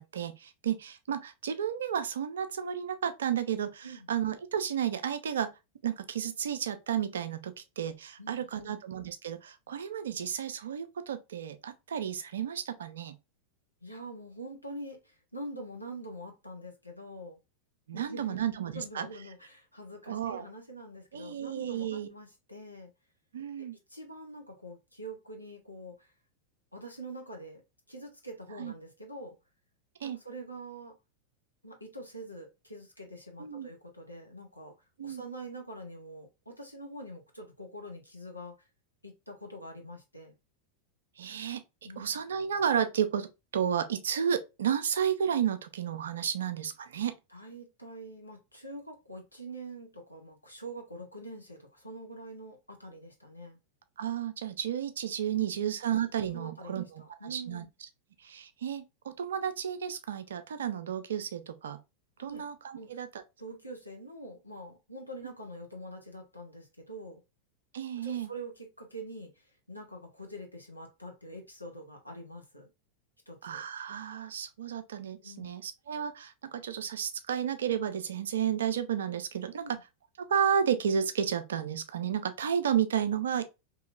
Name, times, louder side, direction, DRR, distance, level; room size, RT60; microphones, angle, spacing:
voice 1, 0.0-5.5 5.8-13.2 17.9-19.1 20.1-20.4 21.1-22.1 23.3-23.8 28.6-28.7 30.0-30.2 33.4-33.7 35.0-35.2 41.2-41.6 42.0-43.3 43.5-47.1 54.0-56.8 57.3-57.6 58.2-61.8 62.2-63.1 67.7-68.3 73.4-79.6 80.2-83.4, right 8 dB, 65° right, 0.4 m, -32 dB
voice 2, 8.2-8.8 13.8-17.4 17.9-22.9 23.9-26.1 26.7-27.6 27.9-29.3 30.0-31.0 31.6-34.7 35.0-38.7 39.0-40.3 41.8-42.1 47.3-53.6 55.4-55.5 56.3-57.7 62.2-62.4 62.7-63.0 63.4-67.2 68.0-72.7 73.3-73.6 75.2-75.5 79.6-79.8, right 1 dB, 85° left, 0.8 m, -45 dB
2.8 x 2.7 x 2.4 m
figure-of-eight pair, 90°, 0 cm